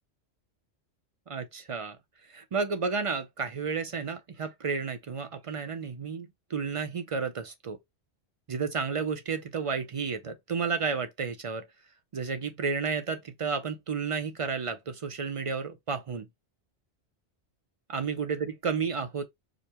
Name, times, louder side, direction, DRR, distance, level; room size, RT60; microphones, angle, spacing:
voice 1, 1.3-2.0 2.3-7.8 8.5-11.7 12.1-16.3 17.9-19.3, right 5 dB, 55° right, 0.3 m, -32 dB
5.0 x 2.0 x 2.8 m
omnidirectional pair, 1.1 m